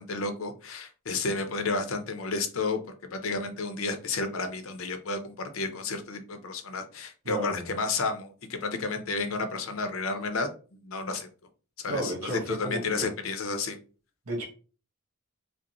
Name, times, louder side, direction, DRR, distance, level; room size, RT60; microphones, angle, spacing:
voice 1, 0.0-10.5 10.8-11.3 11.8-13.8, left 3 dB, 65° left, 0.6 m, -32 dB
voice 2, 7.2-7.7 11.9-13.1 14.3-14.4, right 1 dB, 80° right, 1.4 m, -32 dB
5.0 x 2.0 x 2.9 m
head